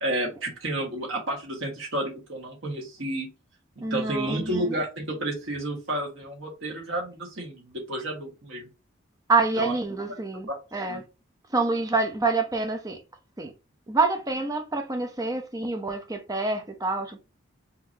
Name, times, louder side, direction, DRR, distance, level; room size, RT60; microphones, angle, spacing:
voice 1, 0.0-3.3 3.8-8.7 9.6-9.7 10.1-11.0, right 1 dB, 70° right, 1.6 m, -31 dB
voice 2, 3.8-4.7 9.3-11.0 11.5-13.0 13.4-13.5 13.9-17.2, right 3 dB, 20° right, 0.7 m, -27 dB
5.7 x 3.0 x 2.8 m
head